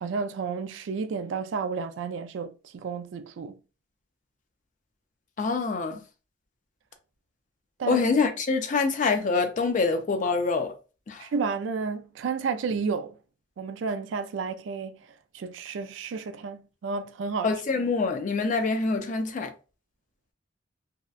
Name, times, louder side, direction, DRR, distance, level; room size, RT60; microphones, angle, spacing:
voice 1, 0.0-3.6 7.8-8.0 11.2-13.1 13.6-15.1 15.3-17.5, right 5 dB, 80° right, 0.3 m, -31 dB
voice 2, 5.4-6.0 7.9-10.7 11.1-11.2 17.4-19.5, left 4 dB, 45° left, 0.4 m, -25 dB
2.7 x 2.1 x 2.3 m
head